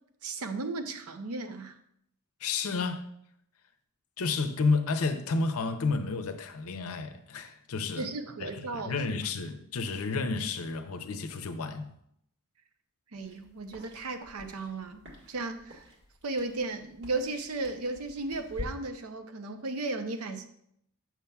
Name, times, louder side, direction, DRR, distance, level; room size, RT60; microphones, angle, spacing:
voice 1, 0.2-1.7 8.0-8.9 13.1-15.0 15.3-15.9 16.2-20.4, right 3 dB, 75° right, 0.6 m, -35 dB
voice 2, 2.4-3.0 4.2-8.1 8.4-11.9, left 4 dB, 70° left, 0.6 m, -31 dB
sound 1, 13.2-18.7, left 1 dB, 50° right, 1.6 m, -48 dB
6.9 x 6.0 x 2.3 m
head